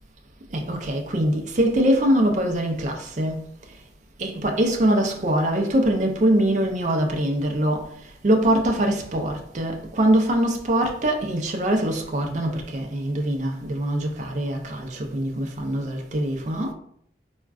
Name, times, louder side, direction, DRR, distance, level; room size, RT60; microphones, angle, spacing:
voice 1, 0.5-3.4 4.2-7.9 8.2-16.7, right 1 dB, 40° right, 0.4 m, -23 dB
3.5 x 2.2 x 2.3 m
head